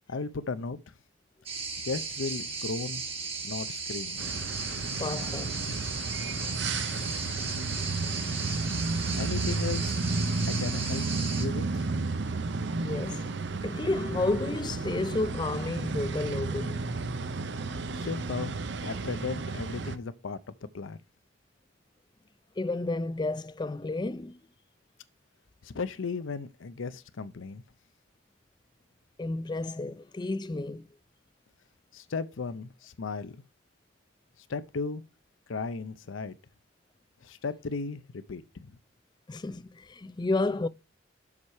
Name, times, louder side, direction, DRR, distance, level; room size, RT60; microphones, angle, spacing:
voice 1, 0.1-0.8 1.8-3.0 3.4-4.2 9.1-10.0 10.4-11.0 11.3-11.9 17.9-21.0 25.6-27.6 31.9-33.4 34.5-35.0 35.5-36.4 37.2-38.8, left 4 dB, 80° left, 0.6 m, -35 dB
sound 1, 1.5-11.5, right 4 dB, 30° right, 1.5 m, -36 dB
sound 2, 4.2-20.0, right 3 dB, 60° right, 0.6 m, -32 dB
voice 2, 5.0-5.6 12.8-13.3 13.6-16.9 22.6-24.4 29.2-30.8 39.3-40.7, left 2 dB, 20° left, 0.3 m, -31 dB
7.3 x 4.8 x 5.6 m
head